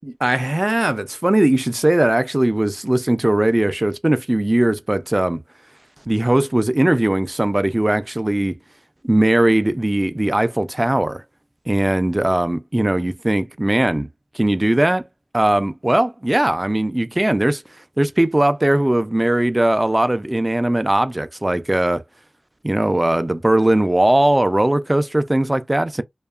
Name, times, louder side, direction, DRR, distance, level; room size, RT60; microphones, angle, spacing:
voice 1, 0.2-5.4 6.1-8.5 9.0-11.2 11.7-14.1 14.3-15.0 15.3-17.6 18.0-22.0 22.6-26.0, right 1 dB, 20° right, 0.3 m, -19 dB
2.7 x 2.3 x 2.3 m
wide cardioid pair, 65°, 0 cm